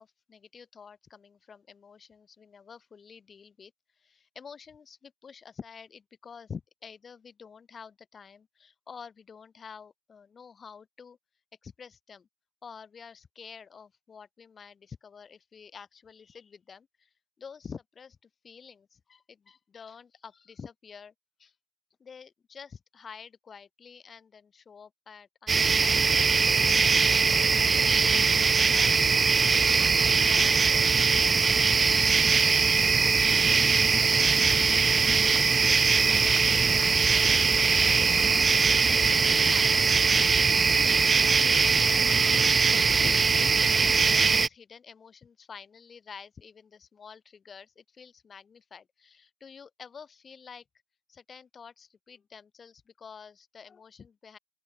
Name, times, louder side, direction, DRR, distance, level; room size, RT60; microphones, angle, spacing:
voice 1, 0.0-3.7 4.0-11.2 11.6-12.3 12.6-17.1 17.4-21.1 21.4-21.5 22.0-25.7 26.0-28.9 29.4-31.1 31.8-35.5 36.0-37.4 37.8-43.2 44.0-50.6 51.1-54.4, left 6 dB, 30° left, 6.0 m, -49 dB
sound 1, 25.5-44.5, right 5 dB, 25° right, 0.6 m, -22 dB
open air
supercardioid pair, 95°, 0 cm